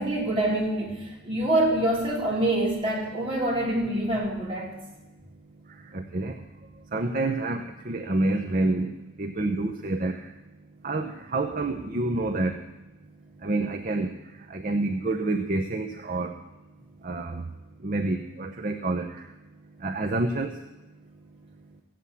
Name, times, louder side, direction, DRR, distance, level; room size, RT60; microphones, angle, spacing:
voice 1, 0.0-4.7, right 1 dB, 25° right, -5 dB, 3.9 m, -26 dB
voice 2, 5.9-6.4 6.9-10.3 10.8-12.6 13.4-14.1 14.5-16.4 17.0-17.5 17.8-19.3 19.8-20.5, right 2 dB, 45° right, 4 dB, 0.7 m, -28 dB
16.0 x 7.6 x 8.4 m, 1.0 s
head